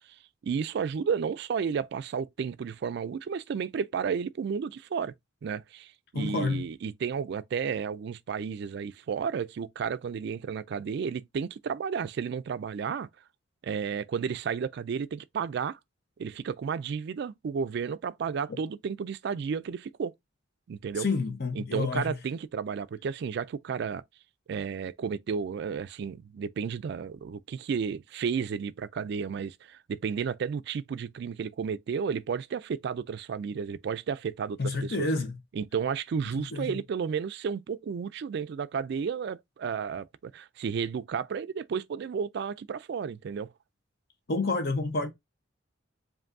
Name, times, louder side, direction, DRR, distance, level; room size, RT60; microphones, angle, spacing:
voice 1, 0.4-5.1 5.4-13.1 13.6-15.8 16.2-20.1 20.7-21.1 21.5-24.0 24.5-35.1 35.5-43.5, right 6 dB, 55° right, 0.3 m, -32 dB
voice 2, 6.1-6.6 18.5-18.6 21.0-22.2 34.6-35.4 36.3-36.7 44.3-45.1, left 3 dB, 50° left, 0.9 m, -29 dB
7.5 x 2.6 x 2.6 m
head